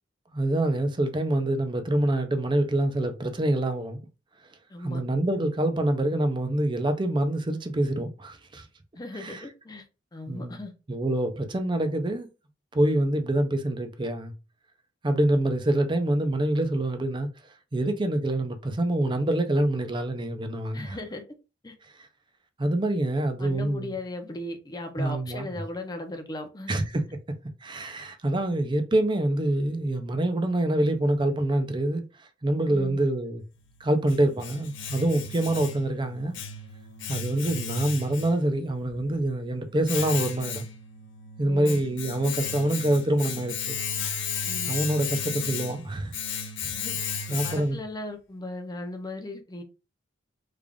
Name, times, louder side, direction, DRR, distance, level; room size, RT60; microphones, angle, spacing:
voice 1, 0.3-4.0 4.8-8.6 9.1-9.4 10.3-10.6 10.9-12.3 12.7-14.3 15.0-17.3 17.7-21.0 22.6-23.9 25.0-25.5 26.7-27.0 27.6-33.4 33.8-36.3 37.1-40.7 41.4-43.8 44.7-46.4 47.3-47.8, right 1 dB, 25° right, 0.5 m, -26 dB
voice 2, 4.7-5.0 8.9-9.8 10.1-10.7 20.7-21.2 21.6-21.7 23.4-26.8 32.7-33.0 41.4-41.8 44.4-44.7 46.7-46.9 47.3-49.6, left 1 dB, 20° left, 0.6 m, -37 dB
Domestic sounds home sounds, 33.5-47.9, left 5 dB, 80° left, 0.7 m, -35 dB
3.3 x 2.4 x 3.6 m
head